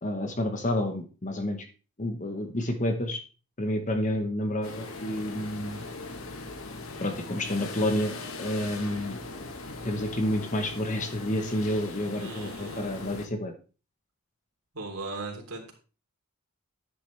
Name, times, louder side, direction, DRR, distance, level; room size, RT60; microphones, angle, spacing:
voice 1, 0.0-1.7 2.0-3.2 3.6-5.9 7.0-9.2 9.8-13.5, left 1 dB, 35° left, 6 dB, 1.1 m, -29 dB
sound 1, 4.6-13.3, left 3 dB, 80° left, 1.8 m, -40 dB
voice 2, 12.2-12.9 14.7-15.7, right 3 dB, 90° right, 0 dB, 3.5 m, -38 dB
11.0 x 9.8 x 3.3 m, 0.35 s
head